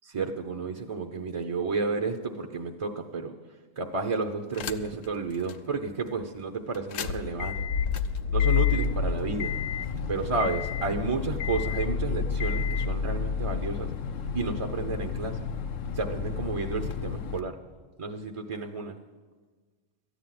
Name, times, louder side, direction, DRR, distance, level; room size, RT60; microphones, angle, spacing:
voice 1, 0.1-3.3 3.8-7.7 8.3-9.5 10.1-13.9 14.3-15.4 15.9-17.5 18.0-18.9, right 4 dB, 35° right, 4 dB, 0.6 m, -31 dB
sound 1, 4.5-5.1 5.5-5.6 6.7-17.4, left 7 dB, 85° left, 1.0 m, -30 dB
13.5 x 9.7 x 5.9 m, 1.4 s
omnidirectional pair, 1.3 m